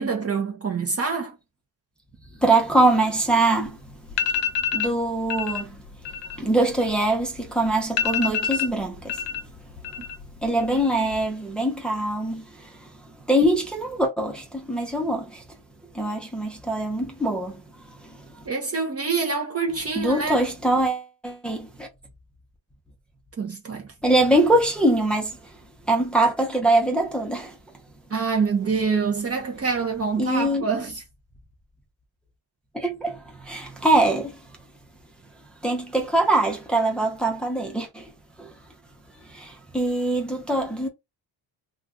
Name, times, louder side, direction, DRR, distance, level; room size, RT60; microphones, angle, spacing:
voice 1, 0.0-1.3 18.5-20.4 23.4-23.9 28.1-31.0, right 5 dB, 30° right, 0.7 m, -26 dB
voice 2, 2.4-3.8 4.7-5.8 6.4-9.2 10.4-12.9 13.3-15.4 15.9-17.6 18.0-18.5 20.0-21.9 24.0-25.4 25.9-27.6 30.2-30.6 32.7-34.4 35.6-38.1 38.4-38.5 39.3-40.9, right 1 dB, ahead, 0.7 m, -23 dB
sound 1, 3.7-3.8 4.1-4.9 5.3-5.6 5.9-7.4 7.7-7.8 8.0-9.4 9.7-10.3 10.6-11.1, left 8 dB, 60° left, 0.7 m, -27 dB
2.5 x 2.4 x 3.6 m
cardioid pair, 105°, 49 cm